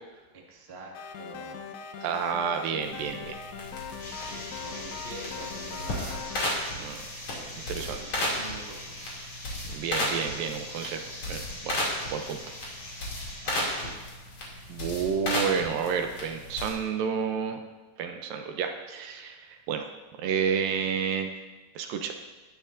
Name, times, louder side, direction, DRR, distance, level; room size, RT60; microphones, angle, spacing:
voice 1, 0.3-1.7 3.8-6.2 7.3-9.2 11.5-11.6 13.4-13.9, right 2 dB, 50° right, -2 dB, 0.7 m, -45 dB
sound 1, 1.0-6.6, left 7 dB, 85° left, 2.7 m, -41 dB
voice 2, 2.0-3.4 6.8-7.0 7.7-8.0 9.7-11.0 11.3-11.8 12.1-12.4 14.7-17.6 18.0-19.9 20.2-21.3 21.8-22.1, right 6 dB, 75° right, 5 dB, 2.3 m, -30 dB
sound 2, 2.8-16.7, left 1 dB, 45° left, 3.4 m, -35 dB
sound 3, 4.0-13.9, left 1 dB, 25° left, 4.1 m, -43 dB
19.5 x 10.0 x 2.6 m, 1.2 s
omnidirectional pair, 4.4 m